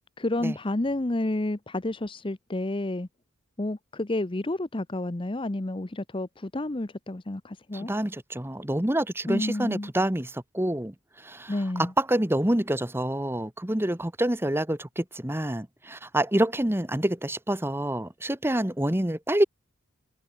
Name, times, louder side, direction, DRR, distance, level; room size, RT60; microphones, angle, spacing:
voice 1, 0.2-3.1 3.6-7.9 9.3-9.9 11.5-11.9, left 1 dB, 25° left, 0.7 m, -30 dB
voice 2, 7.7-19.4, right 1 dB, 10° right, 1.2 m, -27 dB
head